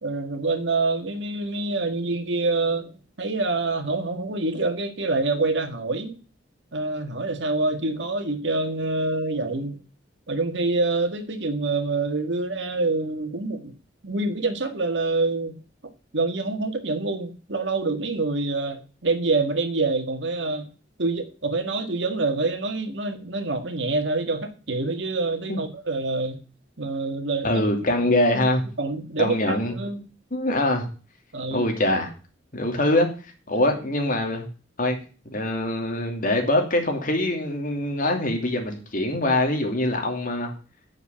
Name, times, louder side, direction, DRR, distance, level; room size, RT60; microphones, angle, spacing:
voice 1, 0.0-6.2 6.7-9.8 10.3-13.7 14.0-15.5 15.8-20.7 21.0-26.4 26.8-27.6 28.3-28.5 28.8-30.0 31.3-31.7 33.5-33.6, right 3 dB, 70° right, 1.7 m, -26 dB
voice 2, 27.4-28.6 29.2-29.7 30.3-30.9 31.5-32.1 32.5-33.1 33.5-34.5 34.8-35.0 35.3-40.5, left 1 dB, 45° left, 2.7 m, -23 dB
8.2 x 7.0 x 8.6 m
head